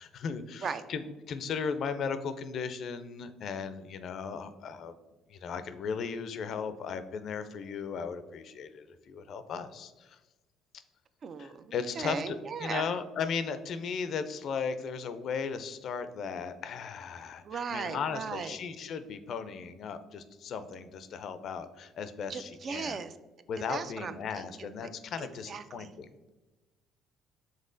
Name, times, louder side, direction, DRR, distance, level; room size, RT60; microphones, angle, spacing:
voice 1, 0.0-4.9 5.3-10.2 11.4-23.0 23.5-26.3, left 6 dB, 60° left, 11 dB, 0.4 m, -36 dB
voice 2, 11.2-13.0 17.4-18.5 22.3-23.2 23.6-24.9 25.2-25.9, right 6 dB, 50° right, 11 dB, 0.3 m, -38 dB
5.3 x 3.6 x 2.5 m, 1.1 s
hypercardioid pair, 65°, 0 cm